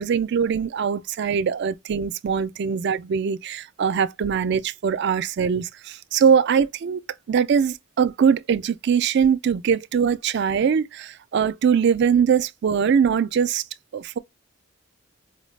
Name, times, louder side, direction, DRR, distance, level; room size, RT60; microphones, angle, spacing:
voice 1, 0.0-7.0 7.3-13.6 13.9-14.2, right 7 dB, 55° right, 0.3 m, -22 dB
4.8 x 2.0 x 3.1 m
head